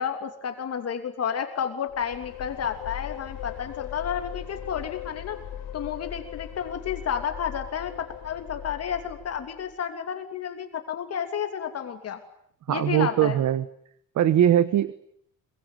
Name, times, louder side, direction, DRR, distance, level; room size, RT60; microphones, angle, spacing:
voice 1, 0.0-5.4 5.7-12.2 12.7-13.4, left 8 dB, 40° left, 6 dB, 3.0 m, -31 dB
sound 1, 1.9-9.7, left 10 dB, 70° left, 3.1 m, -39 dB
voice 2, 12.7-13.7 14.1-14.9, right 11 dB, 55° right, 15 dB, 1.3 m, -21 dB
26.5 x 23.5 x 9.2 m, 0.69 s
cardioid pair, 175°, 36 cm